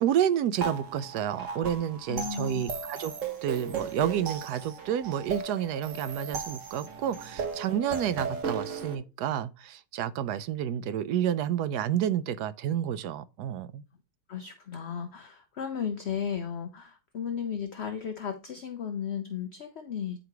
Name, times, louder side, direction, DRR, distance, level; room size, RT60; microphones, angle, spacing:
voice 1, 0.0-3.1 3.4-13.8, right 10 dB, 80° right, 1.1 m, -30 dB
sound 1, 0.6-9.0, right 5 dB, 50° right, 1.4 m, -36 dB
voice 2, 2.1-2.7 14.3-20.2, left 7 dB, 55° left, 0.8 m, -35 dB
9.4 x 3.8 x 4.6 m
omnidirectional pair, 1.8 m